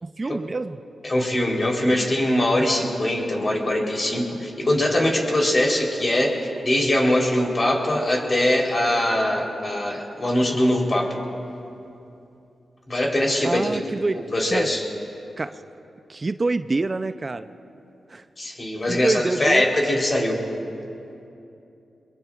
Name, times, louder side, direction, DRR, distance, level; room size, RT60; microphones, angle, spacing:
voice 1, 0.0-0.8 13.4-14.2 14.5-14.7 15.4-15.5 16.1-17.5 18.1-18.2 18.9-19.7, right 3 dB, 40° right, 11 dB, 0.5 m, -26 dB
voice 2, 1.0-11.1 12.9-13.7 14.3-14.8 18.4-20.4, left 1 dB, 40° left, -1 dB, 3.7 m, -22 dB
24.0 x 22.5 x 2.4 m, 2.8 s
cardioid pair, 50°, 0 cm